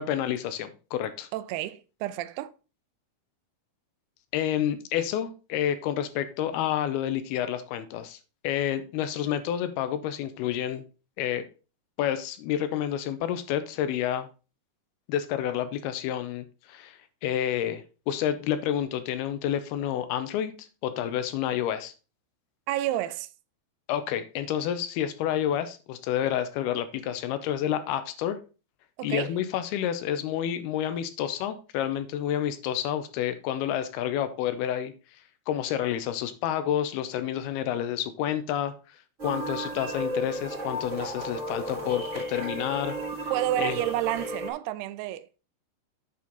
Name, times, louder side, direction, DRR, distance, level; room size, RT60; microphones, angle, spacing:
voice 1, 0.0-1.3 4.3-8.2 8.4-10.8 11.2-11.5 12.0-14.3 15.1-21.9 23.9-28.4 29.0-34.9 35.5-38.7 39.2-43.0 43.2-43.3 43.6-43.8, left 10 dB, 85° left, 2.5 m, -29 dB
voice 2, 1.3-2.5 22.7-23.3 29.0-29.3 43.3-45.4, right 13 dB, 85° right, 2.5 m, -30 dB
sound 1, 39.2-44.5, right 1 dB, 25° right, 1.7 m, -34 dB
8.5 x 6.1 x 3.9 m
omnidirectional pair, 4.7 m